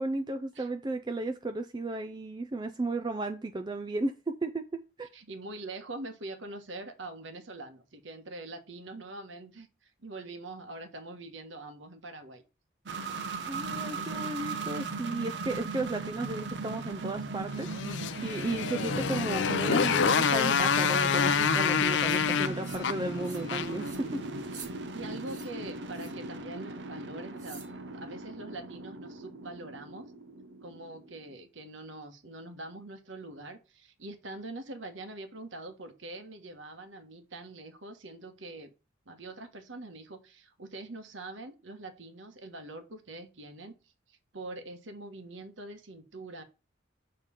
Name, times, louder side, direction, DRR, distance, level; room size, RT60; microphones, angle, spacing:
voice 1, 0.0-4.1 4.4-4.6 5.0-5.1 13.4-17.7 18.2-24.2, right 2 dB, 25° right, 0.4 m, -34 dB
voice 2, 5.1-9.7 10.0-12.4 13.6-14.5 24.9-27.6 27.9-30.1 30.6-38.7 39.1-43.8 44.1-46.4, right 2 dB, 85° right, 1.2 m, -44 dB
sound 1, 12.9-31.3, right 3 dB, 70° right, 0.7 m, -38 dB
Motorcycle, 17.6-23.9, left 6 dB, 70° left, 0.5 m, -27 dB
sound 2, 22.0-22.2 22.6-22.9 23.2-23.5 23.8-24.0 24.4-24.7 25.2-25.5 25.9-26.2 27.4-27.7, right 5 dB, 40° right, 1.4 m, -48 dB
6.7 x 3.2 x 5.6 m
head